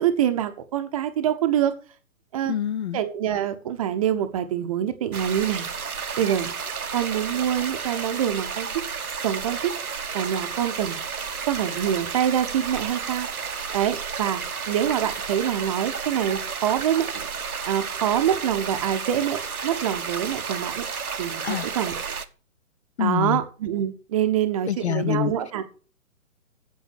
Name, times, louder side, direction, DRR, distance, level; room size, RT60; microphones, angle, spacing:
voice 1, 0.0-1.7 2.3-2.5 2.9-5.7 6.2-6.5 6.9-8.7 9.2-9.7 10.1-11.0 11.5-13.3 13.7-14.4 14.7-17.3 17.7-20.8 21.2-22.0 23.0-25.6, right 10 dB, 25° right, 0.9 m, -25 dB
voice 2, 2.5-3.0 21.4-21.7 23.0-23.4 24.7-25.3, left 9 dB, 50° left, 0.6 m, -25 dB
sound 1, 5.1-22.3, right 6 dB, 80° right, 1.0 m, -32 dB
8.4 x 7.9 x 6.3 m
figure-of-eight pair, 130°, 43 cm